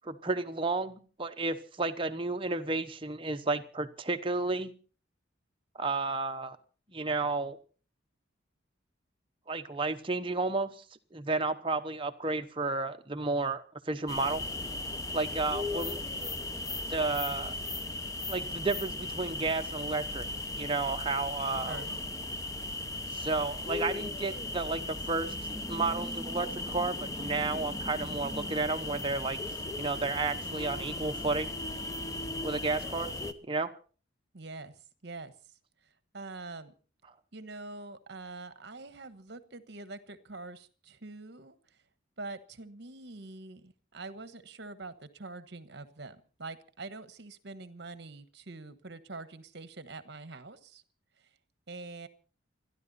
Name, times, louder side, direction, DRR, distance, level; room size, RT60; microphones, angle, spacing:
voice 1, 0.0-4.7 5.7-6.6 6.9-7.6 9.5-10.8 11.1-14.4 15.1-16.0 16.9-17.5 18.3-20.2 20.6-21.8 23.1-29.4 29.8-31.5 32.4-33.1 33.5-33.7, right 3 dB, 25° right, 7 dB, 0.9 m, -32 dB
sound 1, 14.1-33.3, left 2 dB, 15° left, 0.9 m, -37 dB
voice 2, 21.6-22.0 34.3-36.7 37.3-41.8 42.2-50.8 51.2-51.3 51.7-52.1, right 3 dB, 55° right, 13 dB, 1.3 m, -45 dB
29.0 x 11.0 x 4.2 m, 0.39 s
head